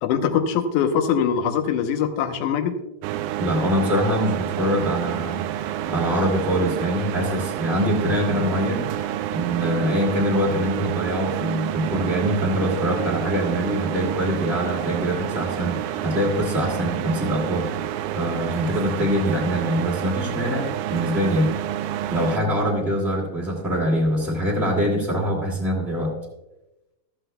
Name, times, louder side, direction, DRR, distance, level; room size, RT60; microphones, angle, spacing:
voice 1, 0.0-2.7, left 7 dB, 70° left, 7 dB, 2.0 m, -22 dB
sound 1, 3.0-22.4, right 12 dB, 80° right, 2.1 m, -29 dB
voice 2, 3.4-17.9 18.1-21.5 22.1-26.1, equal, ahead, -5 dB, 1.2 m, -24 dB
14.0 x 13.5 x 2.3 m, 0.97 s
omnidirectional pair, 4.2 m